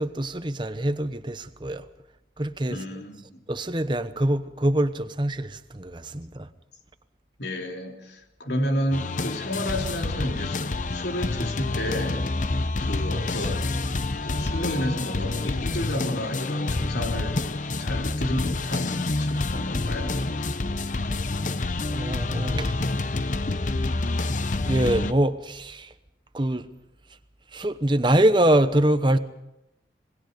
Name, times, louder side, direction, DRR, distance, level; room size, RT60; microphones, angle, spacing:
voice 1, 0.0-1.8 2.4-2.8 3.5-6.5 21.9-22.7 24.7-25.9 26.3-26.7 27.5-29.2, right 1 dB, 25° right, 1.0 m, -24 dB
voice 2, 2.7-3.4 7.4-12.3 12.8-13.8 14.2-17.5 17.8-20.2, left 1 dB, 80° left, 3.1 m, -31 dB
sound 1, 8.9-25.1, left 2 dB, 45° left, 0.7 m, -28 dB
26.5 x 20.5 x 5.2 m
head